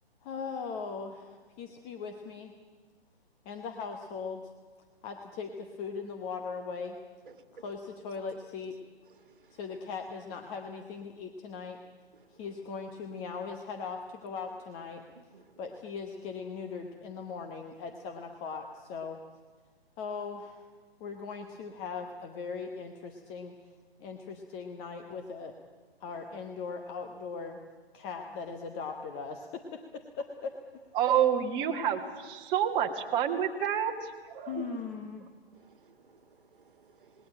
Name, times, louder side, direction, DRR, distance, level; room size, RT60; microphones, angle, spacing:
voice 1, 0.2-2.5 3.4-4.5 5.0-7.0 7.5-8.8 9.5-11.8 12.4-15.0 15.6-19.2 20.0-20.6 21.0-23.5 24.0-25.5 26.0-27.6 27.9-30.6 34.5-35.2, left 5 dB, 15° left, 0.9 m, -39 dB
voice 2, 15.1-15.5 34.5-34.8 35.5-37.3, right 5 dB, 55° right, 1.8 m, -48 dB
voice 3, 30.9-33.9 34.3-34.6, right 9 dB, 15° right, 1.6 m, -28 dB
27.5 x 20.0 x 8.9 m
figure-of-eight pair, 135°, 31 cm